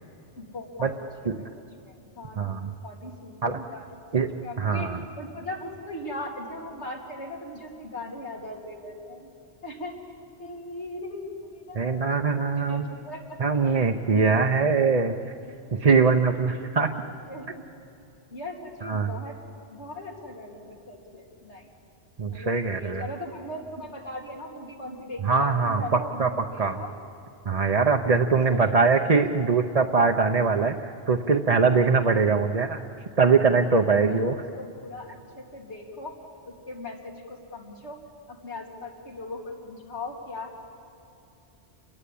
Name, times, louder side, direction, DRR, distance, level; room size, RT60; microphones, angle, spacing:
voice 1, 0.4-1.0 1.8-2.5 2.8-3.9 4.1-4.9 5.2-9.3 9.6-10.0 10.4-12.2 12.6-13.4 13.7-14.7 15.5-15.8 16.4-16.6 17.0-17.7 18.3-19.4 19.7-21.7 22.3-26.9 27.6-27.9 28.5-29.4 30.5-30.7 32.0-32.2 34.0-36.1 36.5-38.0 38.3-40.6, left 1 dB, 85° left, 0 dB, 3.5 m, -39 dB
voice 2, 2.4-2.7 3.4-3.6 4.1-5.0 11.7-12.9 13.4-15.3 15.7-16.9 18.8-19.1 22.2-23.0 25.2-26.8 27.5-32.8 33.2-34.4, right 4 dB, 40° right, 3 dB, 0.8 m, -22 dB
28.5 x 22.5 x 8.5 m, 2.7 s
omnidirectional pair, 1.1 m